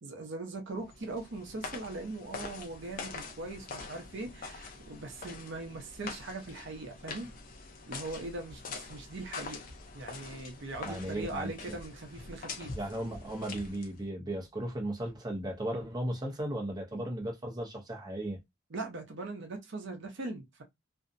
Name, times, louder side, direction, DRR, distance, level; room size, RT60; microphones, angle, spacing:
voice 1, 0.0-7.3 7.9-9.6 9.9-12.7 18.7-20.6, right 2 dB, 60° right, 0.6 m, -40 dB
sound 1, 0.8-14.1, left 4 dB, 45° left, 0.5 m, -44 dB
voice 2, 10.8-11.8 12.7-18.4, right 1 dB, 20° right, 0.6 m, -36 dB
2.6 x 2.0 x 2.5 m
head